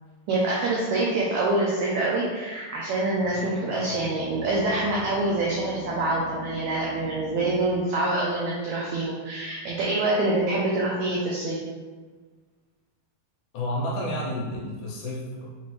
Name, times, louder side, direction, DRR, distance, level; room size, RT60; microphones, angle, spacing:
voice 1, 0.3-11.6, right 2 dB, 85° right, -4 dB, 1.6 m, -26 dB
sound 1, 3.2-7.9, left 2 dB, 50° right, 0.8 m, -42 dB
voice 2, 13.5-15.5, left 1 dB, 75° left, -4 dB, 2.1 m, -30 dB
5.8 x 2.5 x 3.1 m, 1.4 s
omnidirectional pair, 4.0 m